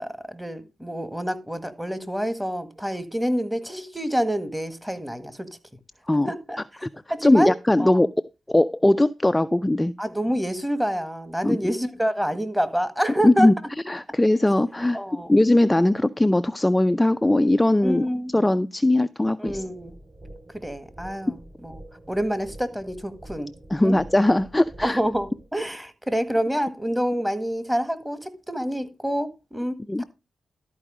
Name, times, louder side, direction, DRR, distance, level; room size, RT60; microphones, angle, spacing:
voice 1, 0.0-5.5 6.3-6.6 7.1-7.5 7.8-8.0 10.0-13.5 14.9-15.3 17.8-18.3 19.4-19.9 20.5-21.7 22.1-23.5 23.8-24.0 24.8-30.0, equal, 5° right, 1.7 m, -27 dB
voice 2, 7.2-8.1 8.5-9.9 11.4-11.6 13.2-13.5 13.9-15.0 15.3-18.0 18.3-19.6 23.7-25.0 29.9-30.0, left 1 dB, 15° left, 0.4 m, -20 dB
sound 1, 19.5-25.5, right 1 dB, 20° right, 4.3 m, -46 dB
12.5 x 4.6 x 5.0 m
cardioid pair, 60°, 0 cm